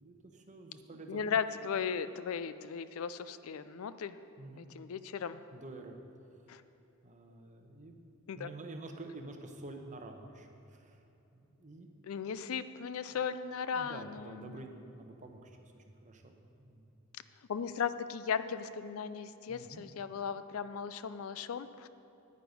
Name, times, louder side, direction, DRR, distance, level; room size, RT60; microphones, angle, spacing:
voice 1, 0.0-1.4 4.4-4.7 5.5-6.0 7.0-8.0 8.3-11.0 11.3-11.9 13.1-13.2 13.7-17.0 19.5-19.9, right 2 dB, 35° right, 4 dB, 0.9 m, -49 dB
voice 2, 1.1-4.1 4.6-5.4 6.5-6.6 8.3-8.5 12.1-14.6 17.5-21.9, left 6 dB, 75° left, 13 dB, 0.4 m, -37 dB
9.7 x 9.3 x 5.2 m, 2.9 s
head